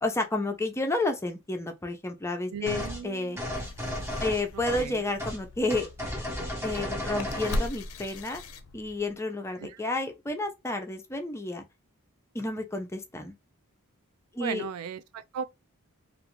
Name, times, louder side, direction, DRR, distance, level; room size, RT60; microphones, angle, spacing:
voice 1, 0.0-3.4 4.2-5.9 6.6-8.4 8.7-11.6 12.3-13.3 14.3-14.6, left 2 dB, 10° left, 0.5 m, -31 dB
voice 2, 2.5-3.5 4.7-5.0 9.6-9.8 14.4-15.4, right 7 dB, 80° right, 0.3 m, -37 dB
sound 1, 2.7-3.0 3.4-4.9 5.2-5.4 5.7-7.7, left 1 dB, 10° right, 0.8 m, -34 dB
sound 2, 3.5-9.2, left 1 dB, 65° left, 0.5 m, -39 dB
2.4 x 2.4 x 3.0 m
head